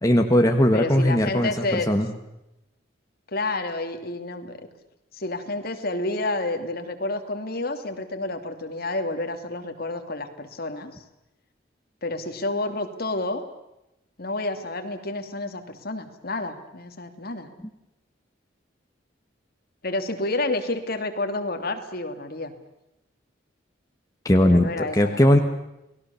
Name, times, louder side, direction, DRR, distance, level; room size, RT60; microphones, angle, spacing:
voice 1, 0.0-2.1 24.2-25.4, left 1 dB, 20° left, 4 dB, 1.6 m, -19 dB
voice 2, 0.7-1.9 3.3-4.6 5.1-11.0 12.0-13.4 14.2-17.5 19.8-22.5 24.4-25.4, left 2 dB, 50° left, 6 dB, 2.8 m, -29 dB
30.0 x 20.0 x 7.1 m, 0.91 s
head